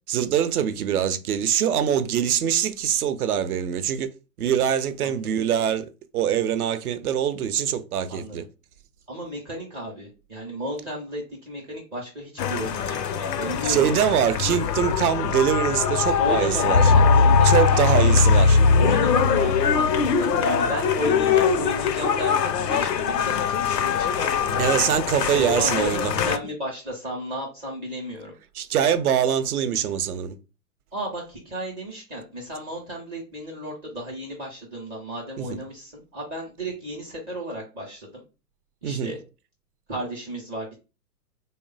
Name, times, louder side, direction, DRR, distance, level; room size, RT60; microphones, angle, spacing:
voice 1, 0.1-4.1 4.4-8.4 13.6-16.9 17.4-18.8 24.6-26.3 28.5-30.4 35.4-35.6 38.8-39.2, right 9 dB, 65° right, 0.6 m, -24 dB
voice 2, 5.0-5.4 8.1-8.4 9.1-14.6 16.2-18.2 18.8-24.6 25.3-28.3 30.9-38.1 38.8-39.2 39.9-40.8, equal, 15° right, 0.5 m, -34 dB
sound 1, 12.4-26.4, left 5 dB, 80° left, 0.6 m, -21 dB
3.1 x 2.1 x 3.8 m
figure-of-eight pair, 110°, 49 cm